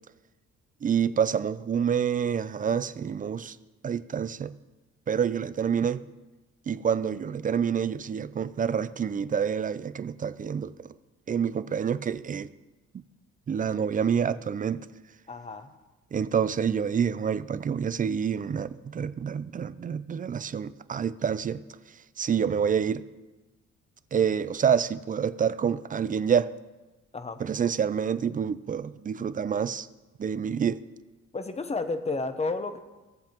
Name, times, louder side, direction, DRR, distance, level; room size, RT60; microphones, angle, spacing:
voice 1, 0.8-3.6 3.8-4.5 5.1-6.0 6.7-10.9 11.3-12.5 12.9-13.0 13.5-14.9 16.1-21.6 22.2-23.0 24.1-26.5 27.4-29.9 30.2-30.8, right 7 dB, 30° right, 15 dB, 0.4 m, -27 dB
voice 2, 15.3-15.7 27.1-27.4 31.3-32.8, left 3 dB, 20° left, 9 dB, 0.8 m, -31 dB
17.5 x 7.5 x 3.0 m, 1.1 s
cardioid pair, 90°, 30 cm